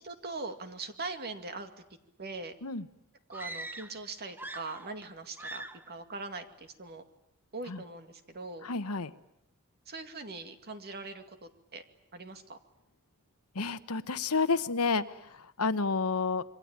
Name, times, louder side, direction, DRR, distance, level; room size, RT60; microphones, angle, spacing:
voice 1, 0.0-1.7 2.2-2.5 3.3-7.0 7.5-8.7 9.9-11.8 12.1-12.6, right 3 dB, 45° right, 7 dB, 2.3 m, -41 dB
sound 1, 3.3-4.0 4.3-5.1 5.4-5.9, right 1 dB, 10° right, 1.0 m, -42 dB
voice 2, 8.6-9.1 13.5-15.0 15.6-16.4, left 4 dB, 75° left, 12 dB, 1.2 m, -29 dB
27.5 x 23.5 x 8.9 m, 0.82 s
head